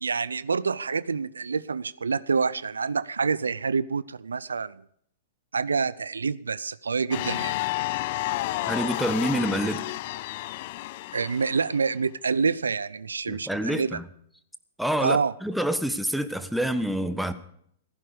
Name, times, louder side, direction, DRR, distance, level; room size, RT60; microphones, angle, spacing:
voice 1, 0.0-4.8 5.5-7.6 11.1-14.0 15.0-15.3, right 5 dB, 85° right, 0.5 m, -27 dB
sound 1, 7.1-11.8, left 18 dB, 50° left, 0.6 m, -31 dB
voice 2, 8.7-9.9 13.3-14.0 14.8-17.3, right 1 dB, ahead, 1.3 m, -27 dB
15.5 x 14.5 x 5.0 m
hypercardioid pair, 110°, 0 cm